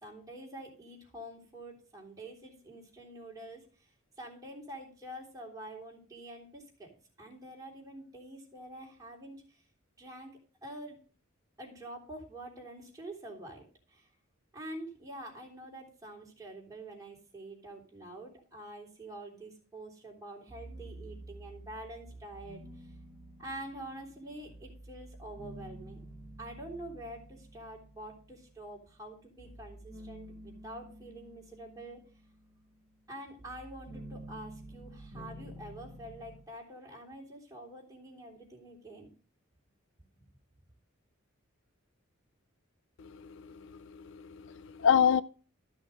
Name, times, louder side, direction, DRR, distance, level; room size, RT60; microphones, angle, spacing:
voice 1, 0.0-3.7 4.2-9.6 10.0-10.3 10.6-11.0 11.6-14.1 14.5-22.6 23.4-26.0 26.4-32.0 33.1-39.1, right 1 dB, 15° right, 3.6 m, -46 dB
sound 1, 20.5-28.9 29.4-36.4, right 1 dB, ahead, 3.5 m, -50 dB
voice 2, 43.0-45.2, left 8 dB, 60° left, 0.4 m, -28 dB
13.5 x 6.2 x 5.1 m
head